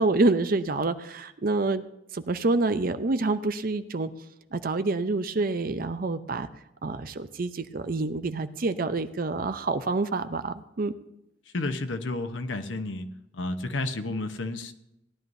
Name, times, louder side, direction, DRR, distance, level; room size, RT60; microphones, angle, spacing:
voice 1, 0.0-1.8 2.1-4.1 4.5-6.5 6.8-10.9, right 3 dB, 50° right, 10 dB, 0.6 m, -27 dB
voice 2, 11.5-13.0 13.3-14.7, left 2 dB, 85° left, 7 dB, 0.9 m, -31 dB
17.5 x 11.0 x 2.7 m, 0.87 s
head